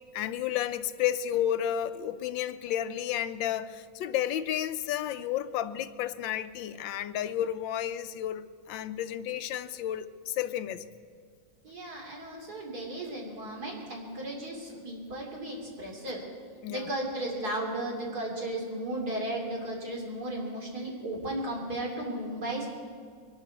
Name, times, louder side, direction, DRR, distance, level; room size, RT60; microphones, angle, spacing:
voice 1, 0.1-10.8 14.7-14.8 16.6-16.9, left 11 dB, 90° left, 1.4 m, -32 dB
voice 2, 11.6-16.2 16.7-22.7, right 1 dB, 55° right, 3.4 m, -35 dB
23.0 x 11.5 x 4.6 m
omnidirectional pair, 2.0 m